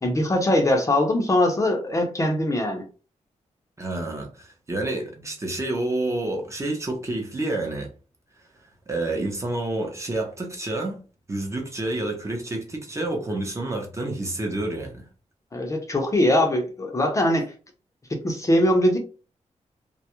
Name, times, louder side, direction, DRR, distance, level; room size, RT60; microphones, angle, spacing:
voice 1, 0.0-2.8 15.5-17.5 18.2-19.0, left 1 dB, 25° left, 0.5 m, -21 dB
voice 2, 3.8-7.9 8.9-11.0 11.3-15.0, right 2 dB, 25° right, 0.6 m, -29 dB
2.2 x 2.0 x 2.8 m
wide cardioid pair, 130°, 13 cm